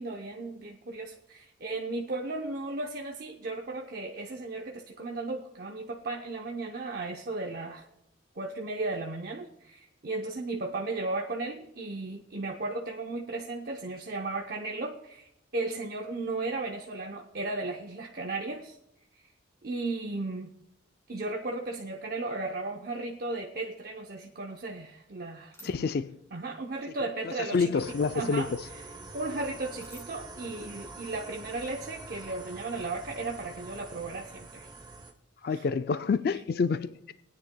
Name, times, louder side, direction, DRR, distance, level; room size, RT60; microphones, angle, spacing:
voice 1, 0.0-7.9 8.4-18.8 19.1-19.2 19.6-20.5 21.1-25.9 26.3-27.8 28.1-28.5 29.1-34.7 35.5-35.6, right 2 dB, 50° right, 0.7 m, -35 dB
sound 1, 25.5-25.7 27.5-27.8 29.8-30.1, right 1 dB, 15° left, 1.9 m, -51 dB
voice 2, 25.6-26.2 27.5-28.7 35.4-37.1, left 5 dB, 50° left, 0.3 m, -28 dB
sound 2, 27.8-35.1, right 3 dB, 20° right, 0.9 m, -45 dB
24.0 x 9.5 x 2.2 m
head